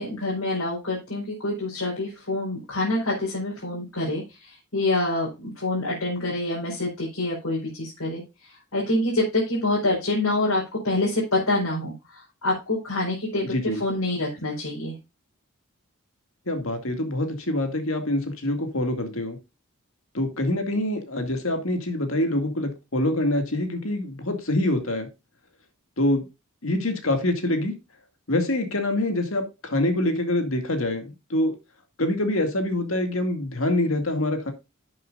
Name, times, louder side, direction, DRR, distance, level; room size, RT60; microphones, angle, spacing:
voice 1, 0.0-15.0, left 2 dB, 85° left, -5 dB, 4.6 m, -26 dB
voice 2, 13.5-13.8 16.5-19.4 20.1-25.1 26.0-26.2 26.6-27.7 28.3-31.5 32.0-34.5, left 1 dB, 65° left, 6 dB, 2.2 m, -25 dB
11.5 x 7.7 x 2.5 m, 0.25 s
head